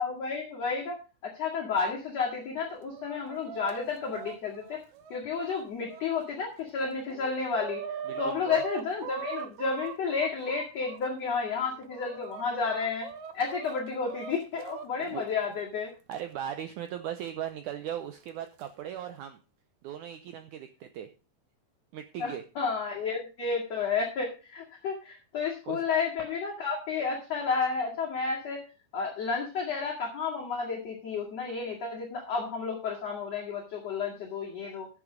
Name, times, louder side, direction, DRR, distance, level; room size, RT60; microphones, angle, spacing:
voice 1, 0.0-4.8 5.1-7.8 8.2-13.1 13.3-15.9 22.2-28.6 28.9-34.9, left 5 dB, 50° left, -2 dB, 2.9 m, -31 dB
Chicken rooster, 2.6-6.0 6.6-6.7 6.9-11.0 11.6-14.9 16.1-16.2 17.2-17.3 18.3-18.6, right 8 dB, 70° right, 1.9 m, -41 dB
voice 2, 8.1-8.6 15.0-15.2 16.1-19.4 19.8-21.1 21.9-22.4 25.7-25.8, right 10 dB, 85° right, 8 dB, 1.8 m, -38 dB
11.0 x 8.5 x 5.1 m, 0.33 s
omnidirectional pair, 4.4 m